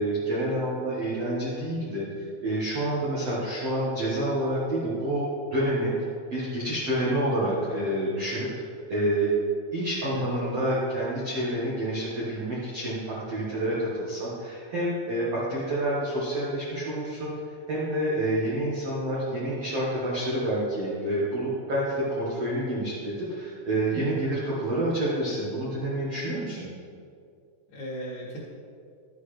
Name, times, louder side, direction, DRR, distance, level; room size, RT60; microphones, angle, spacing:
voice 1, 0.0-2.0 2.4-5.9 6.3-8.5 8.9-9.3 9.7-26.7, right 1 dB, 70° right, -8 dB, 1.4 m, -28 dB
voice 2, 23.9-24.3 27.7-28.4, equal, 60° left, -6 dB, 3.2 m, -36 dB
12.0 x 8.2 x 3.3 m, 2.4 s
omnidirectional pair, 5.4 m